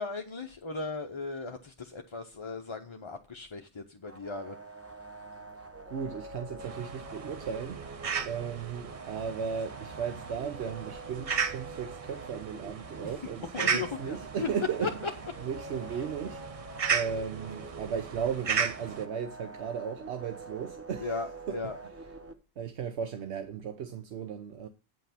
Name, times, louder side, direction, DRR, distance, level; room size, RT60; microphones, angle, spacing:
voice 1, 0.0-4.6 13.0-13.2 13.5-14.5 14.8-14.9 21.0-21.8, left 4 dB, 30° left, 0.7 m, -37 dB
sound 1, 4.0-22.3, right 3 dB, 15° right, 0.9 m, -46 dB
voice 2, 5.9-7.8 8.2-14.9 15.4-21.2 21.5-21.6 22.6-24.7, right 7 dB, 80° right, 1.1 m, -36 dB
sound 2, 6.6-19.0, right 6 dB, 40° right, 0.6 m, -36 dB
9.3 x 5.7 x 5.8 m
omnidirectional pair, 1.1 m